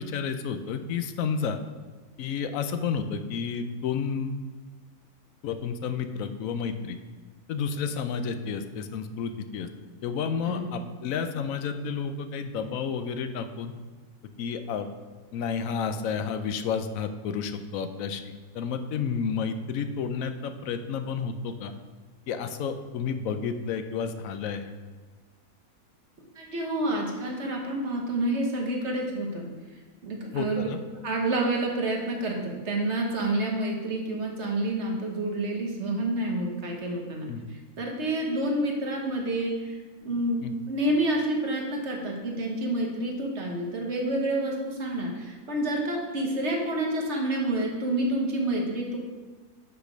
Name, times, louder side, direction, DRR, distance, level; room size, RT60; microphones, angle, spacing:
voice 1, 0.0-1.6 2.2-4.4 5.4-7.0 7.5-9.7 10.0-13.7 14.4-14.9 15.3-21.7 22.3-24.7 30.3-30.8 37.3-37.4 40.4-40.5, left 6 dB, 70° left, 8 dB, 0.9 m, -31 dB
voice 2, 26.4-29.5 30.0-30.7 31.0-37.3 37.8-40.4 40.7-49.0, right 1 dB, 50° right, 0 dB, 1.4 m, -28 dB
6.1 x 5.6 x 5.0 m, 1.4 s
omnidirectional pair, 1.7 m